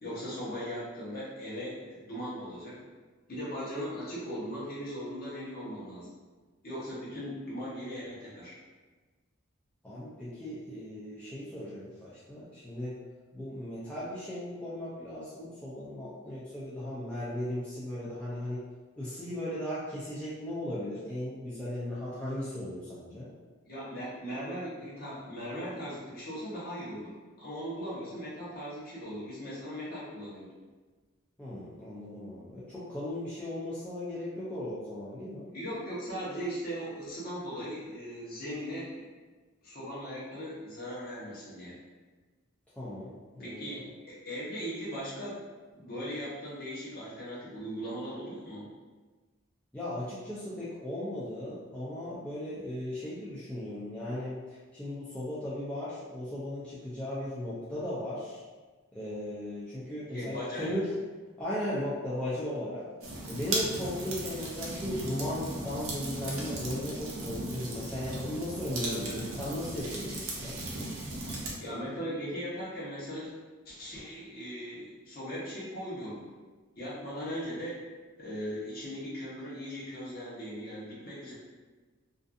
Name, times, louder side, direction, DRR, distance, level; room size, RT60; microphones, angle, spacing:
voice 1, 0.0-2.8 3.3-6.1 6.6-8.6 23.7-30.5 35.5-39.1 39.6-41.8 43.4-45.4 45.7-48.7 60.1-60.8 68.8-69.3 71.6-73.3 73.6-76.3 76.8-77.8 78.2-81.3, equal, 45° left, -8 dB, 0.9 m, -38 dB
voice 2, 9.8-13.0 13.3-18.6 19.0-23.3 31.4-35.5 42.8-43.8 49.7-58.4 58.9-61.0 61.4-62.8 63.3-70.6, left 1 dB, 5° left, -10 dB, 0.3 m, -37 dB
sound 1, 63.0-71.5, right 2 dB, 80° right, 0.6 m, -36 dB
2.5 x 2.4 x 2.4 m, 1.3 s
head